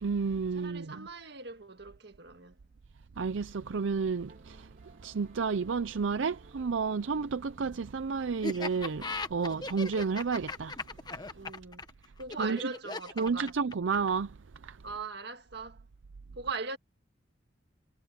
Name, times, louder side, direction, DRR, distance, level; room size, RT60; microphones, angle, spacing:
voice 1, 0.0-1.1 3.2-4.7 5.0-10.8 11.1-11.3 12.4-12.6 13.2-14.4 14.6-14.8, right 5 dB, 80° right, 0.6 m, -31 dB
voice 2, 0.5-2.6 11.3-11.9 12.2-13.5 14.8-15.8 16.3-16.8, right 4 dB, 60° right, 1.7 m, -40 dB
sound 1, 4.3-10.7 12.2-12.3, right 1 dB, 45° right, 3.6 m, -58 dB
Laughter, 8.4-14.2, left 3 dB, 20° left, 1.3 m, -38 dB
head